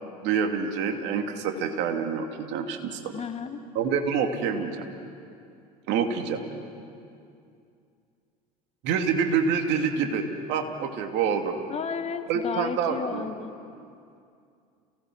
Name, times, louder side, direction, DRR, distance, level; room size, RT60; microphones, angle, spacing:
voice 1, 0.2-3.1 3.7-4.9 5.9-6.4 8.8-11.6 12.3-13.3, right 6 dB, 60° right, 4 dB, 2.6 m, -27 dB
voice 2, 3.1-3.6 11.7-13.5, left 6 dB, 30° left, 8 dB, 1.5 m, -33 dB
29.0 x 18.5 x 6.2 m, 2.4 s
hypercardioid pair, 80°, 20 cm